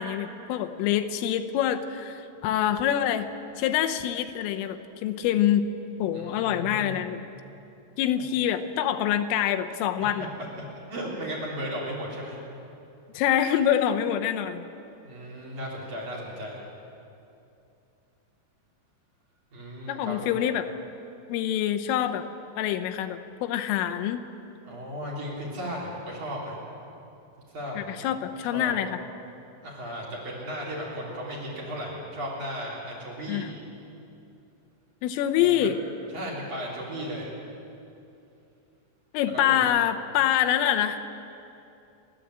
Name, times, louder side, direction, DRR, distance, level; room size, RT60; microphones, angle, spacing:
voice 1, 0.0-3.3 3.6-5.7 6.0-7.2 8.0-10.3 13.1-14.6 19.9-20.7 21.3-22.3 22.6-24.2 27.7-29.0 33.3-33.5 35.0-35.8 39.1-41.0, left 10 dB, 85° left, 7 dB, 3.4 m, -25 dB
voice 2, 6.1-7.0 10.0-10.5 10.9-12.4 15.0-16.6 19.5-20.3 24.6-26.5 27.5-28.1 28.5-28.8 29.6-33.5 35.4-35.7 36.1-37.3 39.3-39.6, equal, 40° right, -3 dB, 4.8 m, -35 dB
30.0 x 11.5 x 8.0 m, 2.8 s
omnidirectional pair, 5.7 m